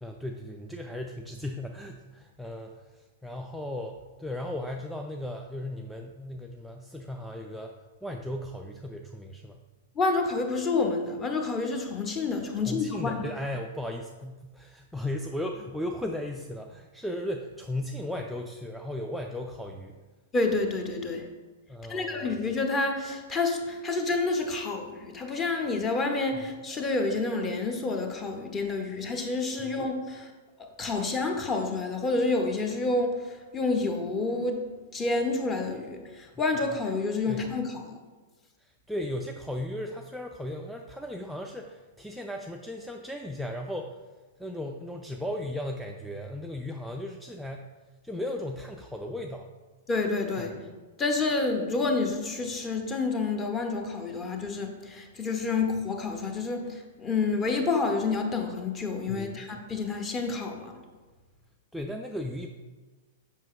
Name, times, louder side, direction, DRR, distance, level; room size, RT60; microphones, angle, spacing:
voice 1, 0.0-9.6 12.6-20.0 21.7-22.3 29.6-29.8 37.3-37.5 38.6-44.0 44.4-47.7 48.0-49.5 59.1-59.5 61.7-62.5, left 1 dB, ahead, 2 dB, 0.3 m, -36 dB
voice 2, 9.9-13.2 20.3-21.3 21.9-30.3 30.8-34.6 34.9-38.0 49.9-50.6 51.0-60.8, left 3 dB, 20° left, 3 dB, 0.8 m, -29 dB
7.2 x 5.6 x 2.4 m, 1.3 s
figure-of-eight pair, 100°, 0 cm